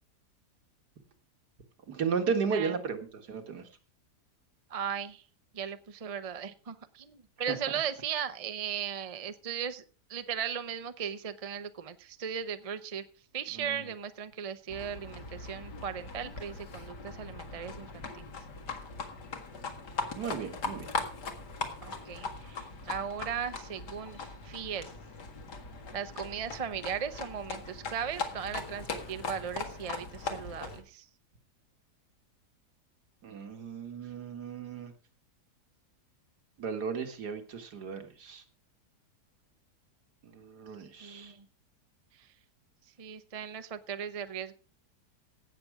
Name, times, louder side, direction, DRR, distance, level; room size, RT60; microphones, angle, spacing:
voice 1, 1.9-3.6 7.5-7.6 13.6-13.8 20.2-20.9 33.2-34.9 36.6-38.4 40.2-41.3, right 6 dB, 75° right, 6 dB, 2.2 m, -34 dB
voice 2, 4.7-5.2 5.5-9.8 10.1-13.0 13.3-18.3 21.8-24.9 25.9-31.1 41.0-41.5 42.2-42.3 43.0-44.6, right 8 dB, 35° right, 11 dB, 0.6 m, -37 dB
Livestock farm animals working animals, 14.7-30.8, left 4 dB, 75° left, 2.4 m, -40 dB
16.5 x 6.9 x 4.8 m, 0.37 s
omnidirectional pair, 1.8 m